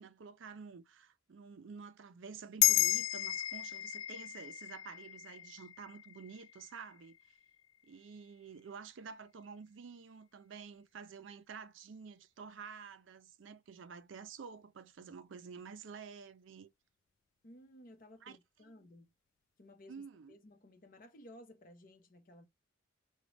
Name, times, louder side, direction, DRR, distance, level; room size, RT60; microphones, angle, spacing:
voice 1, 0.0-7.2 7.8-16.7 18.2-18.4 19.9-20.4, right 5 dB, 75° right, 0.5 m, -50 dB
sound 1, 2.6-7.3, left 15 dB, 85° left, 0.3 m, -33 dB
voice 2, 17.4-19.1 19.6-22.5, left 1 dB, 45° left, 0.7 m, -57 dB
5.0 x 2.2 x 3.2 m
head